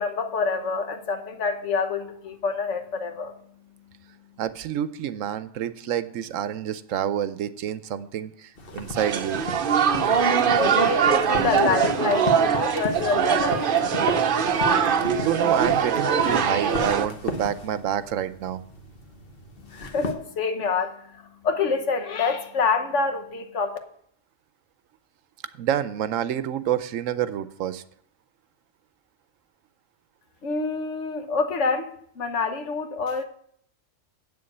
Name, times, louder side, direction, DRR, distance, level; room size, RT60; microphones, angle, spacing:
voice 1, 0.0-3.4 10.0-13.7 19.6-23.8 30.4-33.2, left 4 dB, 65° left, 7 dB, 1.3 m, -27 dB
voice 2, 4.4-9.4 15.2-18.6 25.6-27.8, right 10 dB, 85° right, 14 dB, 1.0 m, -28 dB
sound 1, 8.6-20.1, left 2 dB, 50° left, 1.4 m, -36 dB
sound 2, 8.9-17.1, right 7 dB, 50° right, 0.8 m, -22 dB
8.3 x 7.1 x 7.8 m, 0.67 s
omnidirectional pair, 1.3 m